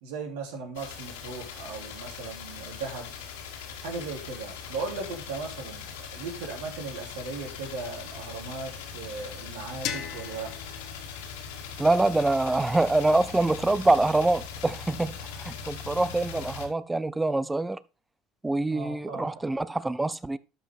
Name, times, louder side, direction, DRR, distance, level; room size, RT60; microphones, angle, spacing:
voice 1, 0.0-3.1 3.8-10.5 18.7-19.3, right 3 dB, 80° right, 3.0 m, -37 dB
sound 1, 0.8-16.7, left 7 dB, 90° left, 2.2 m, -40 dB
sound 2, 9.8-12.7, left 10 dB, 65° left, 1.2 m, -40 dB
voice 2, 11.8-15.1 15.4-17.8 18.4-20.4, right 2 dB, 15° right, 0.6 m, -25 dB
12.0 x 5.7 x 3.5 m
supercardioid pair, 85°, 0 cm